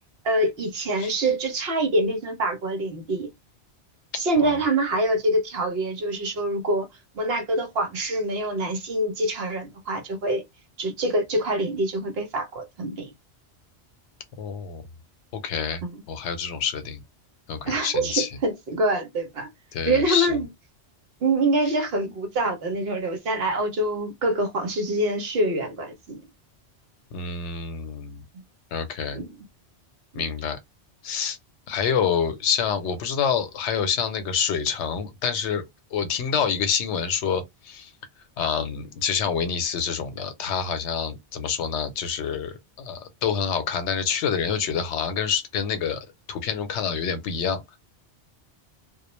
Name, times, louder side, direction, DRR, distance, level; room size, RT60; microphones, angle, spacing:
voice 1, 0.2-3.3 4.1-6.9 7.1-10.4 10.8-13.1 15.8-16.0 17.7-19.5 19.9-20.5 21.2-26.2 29.1-29.5, right 1 dB, 60° right, 0.9 m, -25 dB
voice 2, 14.4-14.8 15.4-15.8 16.1-17.0 17.5-18.3 19.7-20.4 27.1-28.2 28.7-29.2 30.1-30.6 31.0-31.4 31.7-35.6 35.9-37.9 38.4-47.6, left 7 dB, 80° left, 0.9 m, -27 dB
2.4 x 2.1 x 2.9 m
omnidirectional pair, 1.2 m